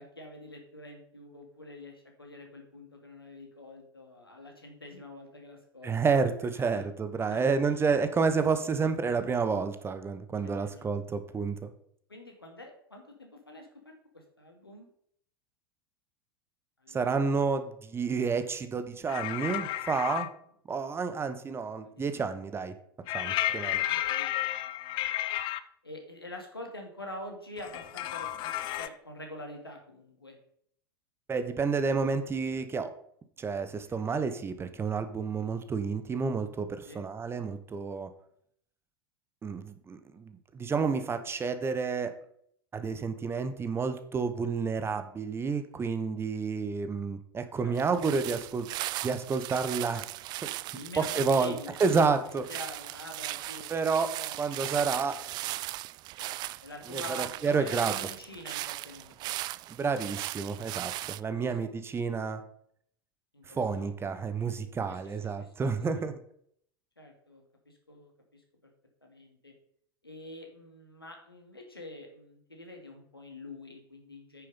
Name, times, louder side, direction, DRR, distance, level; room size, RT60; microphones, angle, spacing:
voice 1, 0.0-6.2 6.6-6.8 7.3-7.8 10.4-10.8 12.1-14.9 16.8-17.3 21.8-22.1 23.8-25.1 25.8-30.4 33.9-34.2 36.8-37.0 47.6-47.8 50.7-51.8 52.3-53.7 54.2-54.6 56.2-59.3 61.2-61.8 63.3-63.9 64.9-65.5 65.9-66.0 67.0-68.7 69.0-69.5 70.0-74.5, left 1 dB, 85° left, 2 dB, 2.4 m, -47 dB
voice 2, 5.8-11.7 16.9-20.3 20.7-22.7 23.1-23.8 31.3-32.9 33.4-38.1 39.4-42.1 42.7-48.7 49.0-50.1 50.4-50.5 51.0-51.5 51.8-52.5 53.7-54.1 54.4-55.2 56.9-57.9 59.7-62.4 63.5-66.1, right 5 dB, 20° right, 10 dB, 1.1 m, -30 dB
sound 1, 19.1-20.3 23.1-25.6 27.6-28.9, left 13 dB, 40° left, 0.7 m, -32 dB
sound 2, 47.8-61.2, right 17 dB, 35° right, 0.4 m, -38 dB
9.4 x 6.8 x 5.5 m, 0.66 s
figure-of-eight pair, 80°, 12 cm